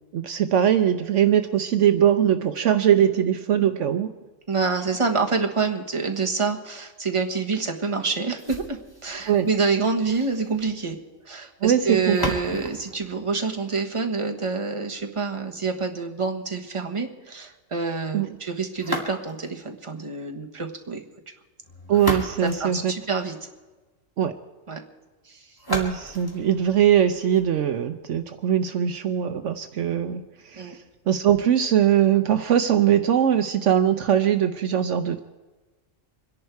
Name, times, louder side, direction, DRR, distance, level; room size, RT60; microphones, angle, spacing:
voice 1, 0.1-4.1 9.2-9.5 11.6-12.6 18.1-18.3 21.9-22.9 24.2-24.3 25.7-30.8 31.1-35.2, right 9 dB, 70° right, 9 dB, 1.0 m, -21 dB
voice 2, 4.5-11.0 11.3-21.0 22.6-23.4 24.7-24.8 25.3-25.4 30.6-30.7, right 4 dB, 25° right, 2 dB, 1.4 m, -27 dB
sound 1, 8.4-14.4 18.7-19.6 21.6-23.6 25.6-27.6, equal, 15° left, 2.3 m, -35 dB
26.0 x 11.0 x 4.7 m, 1.2 s
omnidirectional pair, 1.3 m